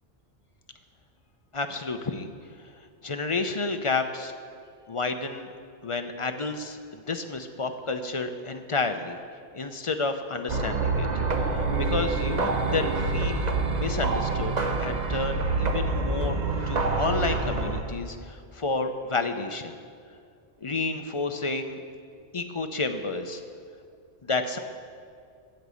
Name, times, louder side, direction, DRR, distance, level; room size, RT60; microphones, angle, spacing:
voice 1, 1.5-2.3 3.0-4.3 4.9-5.5 5.8-9.2 9.5-11.1 11.5-14.5 14.8-16.4 16.7-19.8 20.6-21.8 22.3-23.4 24.2-24.6, left 3 dB, 35° left, 7 dB, 0.6 m, -30 dB
sound 1, 10.5-17.8, right 3 dB, 40° right, 0.9 m, -26 dB
14.5 x 5.4 x 8.2 m, 2.3 s
omnidirectional pair, 1.2 m